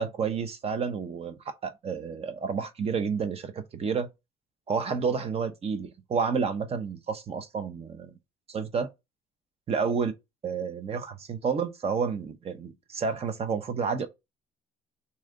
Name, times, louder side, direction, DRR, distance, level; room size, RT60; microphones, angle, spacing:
voice 1, 0.0-4.1 4.7-8.1 8.5-8.9 9.7-10.1 10.4-14.1, right 5 dB, 35° right, 0.7 m, -30 dB
3.1 x 2.7 x 3.6 m
cardioid pair, 110°, 17 cm